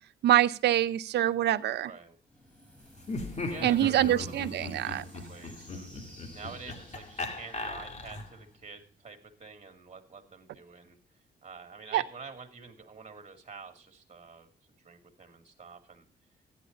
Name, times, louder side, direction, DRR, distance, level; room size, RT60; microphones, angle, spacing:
voice 1, 0.2-1.9 3.6-5.0 11.9-12.0, right 12 dB, 85° right, 0.6 m, -25 dB
voice 2, 1.8-2.2 3.5-5.9 6.3-11.0 11.4-14.5 14.8-16.1, right 5 dB, 40° right, 2.4 m, -47 dB
sound 1, 2.2-9.1, equal, 5° left, 8.0 m, -55 dB
Laughter, 3.0-8.4, left 2 dB, 40° left, 1.9 m, -38 dB
13.0 x 9.9 x 3.9 m
cardioid pair, 80°, 17 cm